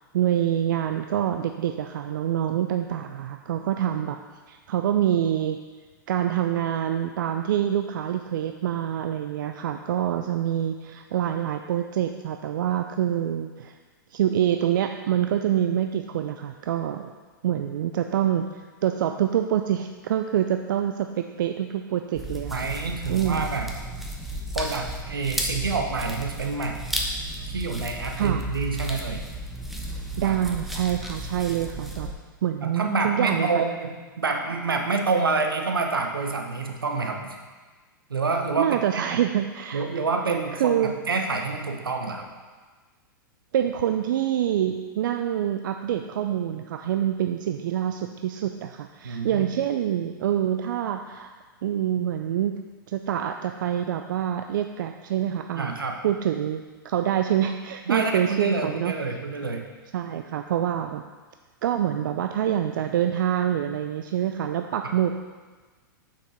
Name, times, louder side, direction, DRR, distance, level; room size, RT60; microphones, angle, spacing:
voice 1, 0.1-4.2 4.5-5.6 6.1-13.8 14.1-17.1 17.4-22.7 23.1-23.5 28.2-28.4 30.2-32.1 32.4-33.5 38.6-39.8 40.3-40.9 43.5-51.3 51.6-52.5 52.9-55.8 56.0-58.9 59.9-61.1 61.6-65.2, right 10 dB, 65° right, 7 dB, 0.4 m, -26 dB
sound 1, 22.1-32.1, equal, ahead, 0.9 m, -33 dB
voice 2, 22.5-23.7 24.5-26.8 27.5-29.2 30.2-30.4 32.6-37.4 38.1-39.2 39.7-42.3 49.0-49.5 55.5-56.0 57.9-59.7, right 4 dB, 85° right, 3 dB, 1.0 m, -27 dB
7.0 x 5.9 x 4.3 m, 1.4 s
hypercardioid pair, 105°, 11 cm